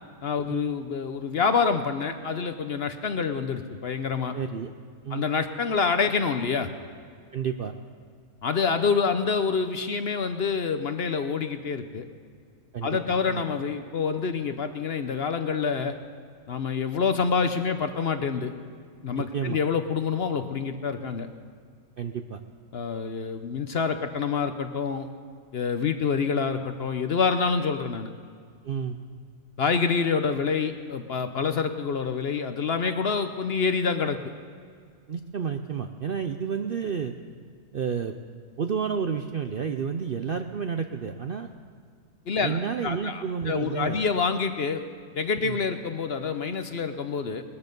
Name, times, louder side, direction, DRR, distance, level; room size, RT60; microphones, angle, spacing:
voice 1, 0.2-4.3 5.1-6.7 8.4-12.0 12.8-15.9 16.5-18.5 19.0-21.3 22.7-25.1 25.5-28.1 29.6-34.2 42.3-44.8 45.2-47.4, left 5 dB, 50° left, 8 dB, 0.8 m, -27 dB
voice 2, 4.3-4.7 5.0-5.3 7.3-7.7 12.7-13.0 13.3-13.4 19.2-19.6 22.0-22.4 28.6-29.0 35.1-37.1 37.7-38.2 38.6-41.5 42.4-44.0 45.4-45.6, right 7 dB, 60° right, 7 dB, 0.6 m, -30 dB
19.5 x 14.0 x 5.3 m, 2.1 s
omnidirectional pair, 1.6 m